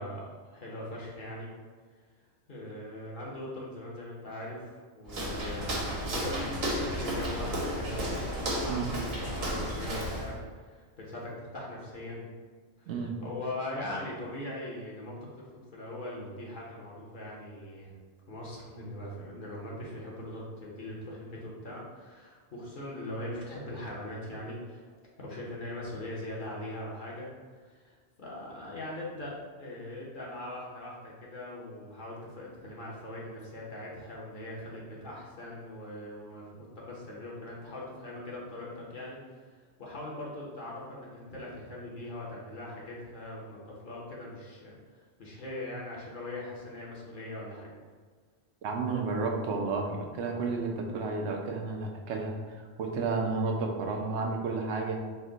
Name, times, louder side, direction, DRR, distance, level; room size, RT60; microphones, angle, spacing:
voice 1, 0.0-1.5 2.5-8.3 8.6-12.2 12.9-15.4 15.7-17.9 18.3-24.8 25.2-27.3 27.6-29.3 29.6-39.2 39.8-47.7, left 1 dB, 50° left, -4 dB, 0.9 m, -41 dB
Walk footsteps, 5.1-10.4, equal, 65° right, 1.1 m, -33 dB
voice 2, 48.6-55.0, right 4 dB, 80° right, 2 dB, 0.9 m, -32 dB
4.4 x 2.1 x 3.7 m, 1.5 s
omnidirectional pair, 1.1 m